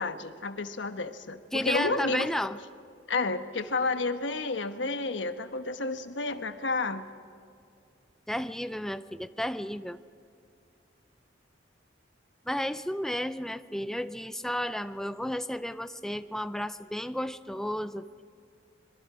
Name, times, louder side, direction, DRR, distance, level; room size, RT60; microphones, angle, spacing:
voice 1, 0.0-2.3 3.1-7.1, left 3 dB, 75° left, 9 dB, 1.2 m, -31 dB
voice 2, 1.5-2.6 8.3-10.0 12.5-18.2, equal, 5° left, 12 dB, 0.5 m, -32 dB
26.0 x 22.0 x 5.0 m, 2.4 s
head